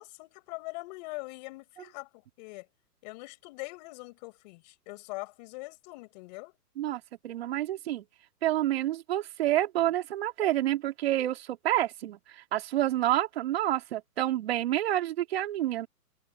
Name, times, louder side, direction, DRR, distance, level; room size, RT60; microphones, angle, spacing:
voice 1, 0.0-2.7 3.0-6.5, left 25 dB, 25° left, 7.0 m, -42 dB
voice 2, 6.8-8.0 8.4-15.9, right 13 dB, 40° right, 3.1 m, -28 dB
hypercardioid pair, 165°, 48 cm